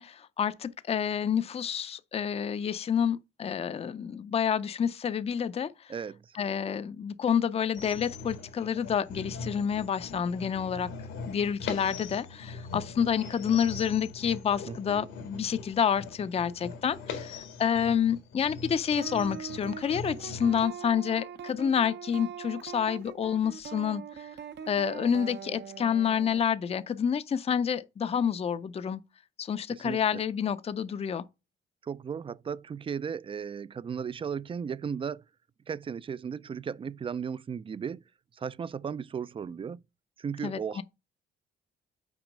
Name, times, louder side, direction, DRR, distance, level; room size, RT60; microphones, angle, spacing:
voice 1, 0.0-5.9 6.3-10.9 11.3-24.3 24.7-29.0 29.4-31.2 40.4-40.8, left 8 dB, 30° left, 0.5 m, -29 dB
voice 2, 5.9-6.4 14.7-15.1 29.7-30.2 31.8-35.2 35.7-38.0 38.3-39.8 40.2-40.8, right 7 dB, 25° right, 0.3 m, -36 dB
sound 1, 7.7-20.7, left 4 dB, 90° left, 1.8 m, -41 dB
sound 2, 19.0-26.4, right 8 dB, 60° right, 0.8 m, -42 dB
6.0 x 4.4 x 5.2 m
cardioid pair, 90°, 20 cm